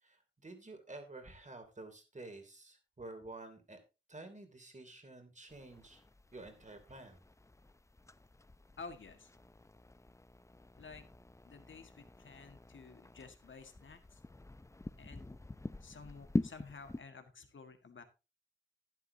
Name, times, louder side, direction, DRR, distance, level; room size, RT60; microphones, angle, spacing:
voice 1, 0.0-3.8 4.1-6.0 6.3-7.2, right 2 dB, 40° right, 6 dB, 3.0 m, -50 dB
sound 1, 5.5-17.0, left 2 dB, 15° left, 0.5 m, -45 dB
voice 2, 8.8-9.3 10.7-11.1 11.4-14.2 15.0-15.4 15.8-18.0, left 4 dB, 80° left, 8 dB, 1.7 m, -52 dB
12.0 x 11.0 x 2.8 m, 0.28 s
wide cardioid pair, 70°, 20 cm